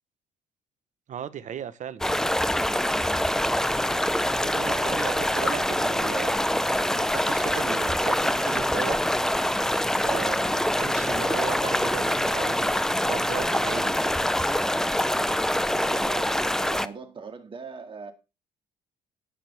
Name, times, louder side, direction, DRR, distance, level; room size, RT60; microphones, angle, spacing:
voice 1, 1.1-2.0 4.3-6.5 6.9-9.0 10.0-14.0, right 9 dB, 45° right, 1.1 m, -36 dB
sound 1, 2.0-16.9, left 1 dB, 5° left, 0.5 m, -25 dB
voice 2, 4.4-5.6 15.2-18.1, right 5 dB, 30° right, 2.0 m, -41 dB
18.0 x 6.2 x 3.5 m
cardioid pair, 110°, 17 cm